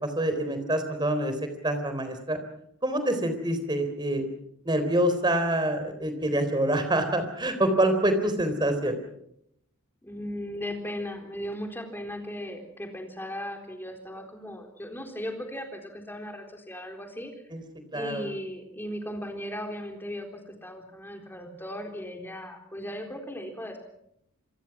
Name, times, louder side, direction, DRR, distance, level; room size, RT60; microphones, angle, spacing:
voice 1, 0.0-1.3 1.6-2.4 2.8-4.2 4.7-8.9 17.5-17.6 17.9-18.2, right 1 dB, 20° right, 8 dB, 3.9 m, -26 dB
voice 2, 10.0-17.3 17.9-23.8, equal, 10° left, 3 dB, 4.0 m, -37 dB
27.5 x 23.0 x 6.1 m, 0.75 s
head